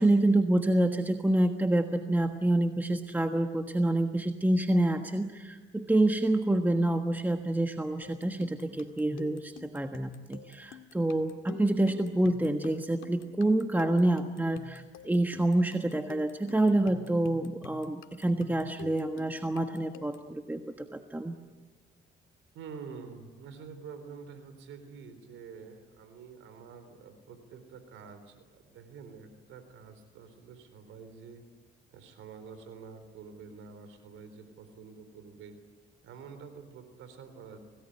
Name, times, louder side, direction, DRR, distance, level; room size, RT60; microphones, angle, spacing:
voice 1, 0.0-21.4, right 1 dB, 10° right, 6 dB, 1.4 m, -27 dB
sound 1, 8.0-20.3, left 9 dB, 85° left, 2.0 m, -49 dB
voice 2, 22.5-31.4 31.9-35.6 36.0-37.6, right 5 dB, 90° right, 9 dB, 3.7 m, -47 dB
26.0 x 18.5 x 10.0 m, 1.3 s
cardioid pair, 90°, 20 cm